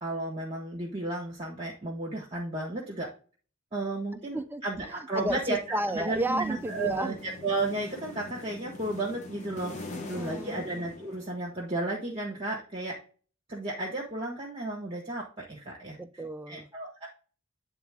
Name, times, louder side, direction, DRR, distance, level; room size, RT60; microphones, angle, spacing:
voice 1, 0.0-3.1 3.7-5.6 5.9-9.7 10.1-13.0 13.5-16.0 16.5-17.1, right 2 dB, 25° right, -2 dB, 1.4 m, -33 dB
voice 2, 4.9-7.1 9.9-10.6 16.0-16.7, right 1 dB, 10° right, 8 dB, 0.5 m, -32 dB
sound 1, 5.2-11.7, left 2 dB, 35° left, 1.0 m, -44 dB
9.2 x 3.6 x 3.5 m, 0.39 s
head